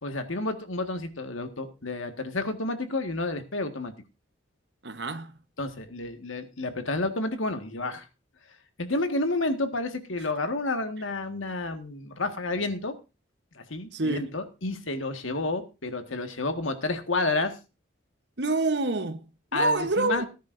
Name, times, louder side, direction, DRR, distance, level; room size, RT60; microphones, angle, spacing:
voice 1, 0.0-3.9 5.6-8.0 8.8-12.9 13.5-17.6 19.5-20.2, left 2 dB, 85° left, 1.7 m, -30 dB
voice 2, 4.8-5.4 13.9-14.3 18.4-20.3, right 2 dB, 60° right, 1.1 m, -27 dB
18.5 x 10.0 x 2.6 m
head